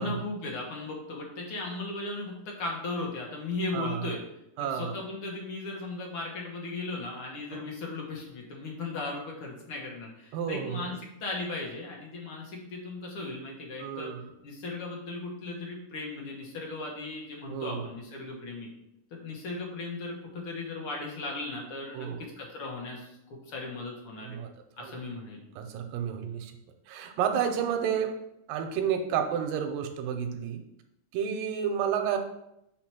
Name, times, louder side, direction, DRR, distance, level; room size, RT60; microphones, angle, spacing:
voice 1, 0.0-4.2 4.6-14.1 14.4-18.7 19.1-22.1 22.4-23.2 23.5-24.4 24.8-25.4, left 3 dB, 55° left, -1 dB, 1.6 m, -37 dB
voice 2, 3.7-4.1 4.6-4.9 7.5-7.6 10.3-10.9 13.8-14.2 17.5-17.8 21.9-22.2 24.2-24.5 24.8-24.9 25.6-26.5 26.9-28.1 28.5-30.6 31.1-32.2, right 8 dB, 85° right, 6 dB, 2.4 m, -30 dB
4.9 x 4.4 x 6.0 m, 0.82 s
omnidirectional pair, 3.9 m